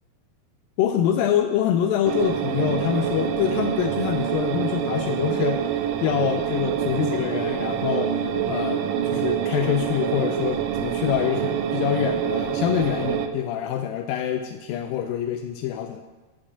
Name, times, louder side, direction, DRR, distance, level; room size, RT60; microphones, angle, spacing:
voice 1, 0.8-5.6 6.0-8.2 8.5-16.0, left 10 dB, 85° left, 6 dB, 2.0 m, -25 dB
sound 1, 2.1-13.3, right 9 dB, 80° right, 1.9 m, -26 dB
10.0 x 5.2 x 8.4 m, 1.2 s
omnidirectional pair, 4.6 m